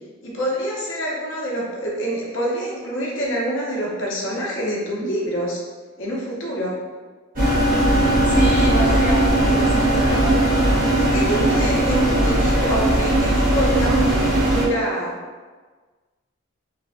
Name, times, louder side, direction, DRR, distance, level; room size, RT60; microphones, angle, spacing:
voice 1, 0.2-5.6 6.0-6.8 9.4-9.5 11.0-15.1, equal, 70° left, -3 dB, 0.7 m, -26 dB
sound 1, 7.4-14.7, right 1 dB, 40° right, 0.8 m, -18 dB
voice 2, 8.3-10.4, right 1 dB, 10° right, -5 dB, 0.4 m, -25 dB
3.3 x 2.2 x 2.4 m, 1.4 s
head